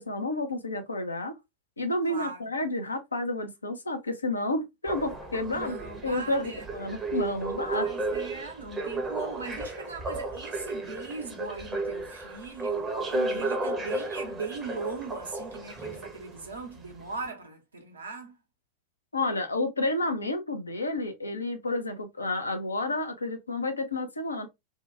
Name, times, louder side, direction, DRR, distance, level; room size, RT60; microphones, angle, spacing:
voice 1, 0.0-1.4 1.8-5.8 6.0-7.9 13.1-13.4 19.1-24.5, left 2 dB, 80° left, 0.5 m, -30 dB
voice 2, 2.1-2.4 5.5-6.7 7.8-12.9 13.3-18.3, right 4 dB, 75° right, 0.8 m, -39 dB
sound 1, 4.9-16.5 17.1-17.2, right 2 dB, 20° right, 0.7 m, -33 dB
2.7 x 2.2 x 2.4 m
figure-of-eight pair, 90°, 0 cm